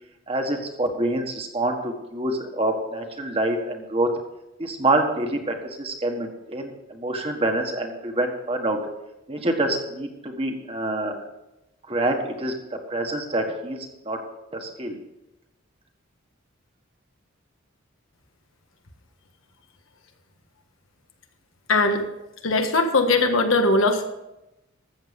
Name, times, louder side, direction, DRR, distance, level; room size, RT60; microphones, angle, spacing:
voice 1, 0.3-4.1 4.6-8.8 9.3-11.1 11.9-14.2 14.5-15.0, right 1 dB, 30° right, 3 dB, 1.5 m, -26 dB
voice 2, 21.7-22.0 22.4-24.0, left 2 dB, 85° left, 5 dB, 1.6 m, -20 dB
13.5 x 8.0 x 5.3 m, 0.93 s
head